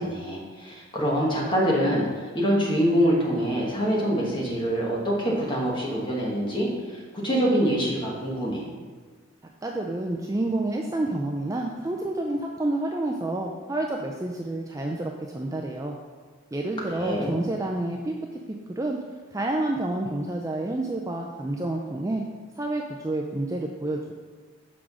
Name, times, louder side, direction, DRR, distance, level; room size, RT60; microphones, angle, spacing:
voice 1, 0.0-8.7 16.9-17.4, equal, 20° left, -3 dB, 1.5 m, -25 dB
voice 2, 9.6-15.9 16.5-18.1 18.8-19.0 19.3-22.2 22.6-24.1, right 2 dB, 15° right, 1 dB, 0.4 m, -29 dB
6.0 x 4.9 x 6.1 m, 1.4 s
head